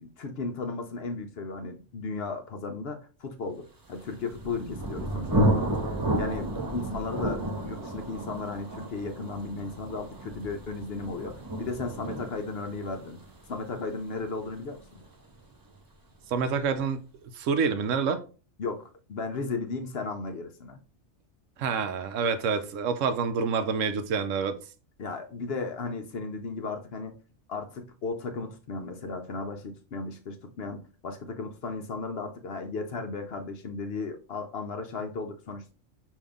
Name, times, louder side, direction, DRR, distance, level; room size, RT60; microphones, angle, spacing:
voice 1, 0.0-13.2 13.5-15.0 18.6-20.8 25.0-27.1 27.5-35.7, left 3 dB, 55° left, 0.8 m, -35 dB
Thunder, 4.0-15.5, right 1 dB, 25° right, 0.5 m, -32 dB
voice 2, 16.3-17.1 17.3-18.2 21.6-24.6, right 5 dB, 80° right, 0.9 m, -27 dB
5.3 x 2.7 x 3.5 m
omnidirectional pair, 1.3 m